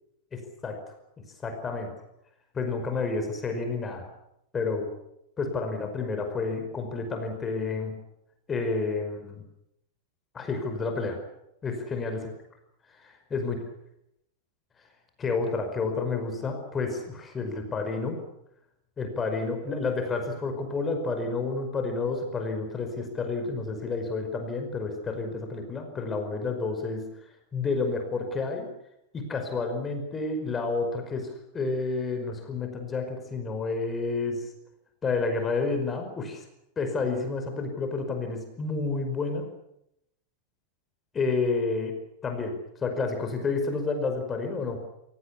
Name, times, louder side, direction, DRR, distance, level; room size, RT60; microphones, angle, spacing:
voice 1, 0.3-0.8 1.2-1.9 2.5-4.1 4.5-4.9 5.4-8.0 8.5-9.4 10.3-11.2 11.6-12.2 13.0-13.6 15.2-18.2 19.0-27.1 27.5-28.7 29.1-34.4 35.0-36.5 36.8-39.5 41.1-42.0 42.2-44.8, left 3 dB, 20° left, 5 dB, 5.3 m, -30 dB
28.0 x 18.0 x 8.5 m, 0.81 s
figure-of-eight pair, 90°, 0 cm